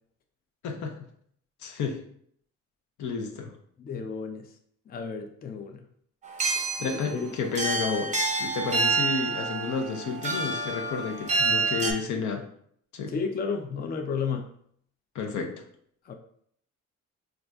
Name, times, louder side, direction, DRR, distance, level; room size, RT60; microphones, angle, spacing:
voice 1, 0.6-0.9 1.6-2.0 3.0-3.5 6.8-8.1 8.4-12.4 12.9-13.1 15.1-15.6, left 5 dB, 75° left, 3 dB, 0.6 m, -31 dB
voice 2, 3.8-4.5 4.9-5.9 7.1-7.3 13.1-14.5 16.1-16.2, left 5 dB, 30° left, 5 dB, 0.4 m, -32 dB
sound 1, 6.2-11.9, right 3 dB, 25° right, 0.6 m, -28 dB
3.9 x 2.4 x 2.3 m, 0.65 s
cardioid pair, 90°, 30 cm